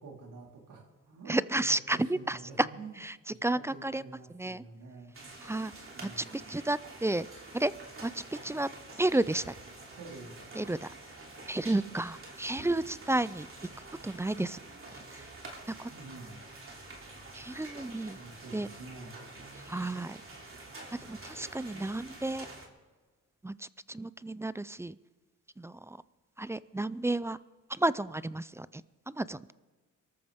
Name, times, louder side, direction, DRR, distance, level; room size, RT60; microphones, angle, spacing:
voice 1, 0.0-3.0 3.3-5.1 5.9-6.6 10.0-10.7 15.9-16.4 18.1-19.2, right 3 dB, 80° right, -1 dB, 3.8 m, -48 dB
voice 2, 1.3-2.7 3.0-4.0 4.3-4.6 5.4-5.7 6.0-7.3 7.5-7.7 8.0-8.7 9.0-9.5 10.6-10.9 11.5-13.5 14.0-14.6 15.1-15.3 15.8-15.9 17.3-18.2 18.5-18.7 19.7-20.2 21.1-22.5 23.4-25.0 25.6-26.0 26.4-27.4 27.7-28.8 29.1-29.5, right 2 dB, 10° right, 17 dB, 0.3 m, -32 dB
sound 1, 5.1-22.7, right 2 dB, 40° right, 2.9 m, -48 dB
24.0 x 13.5 x 3.6 m, 1.4 s
cardioid pair, 100°, 32 cm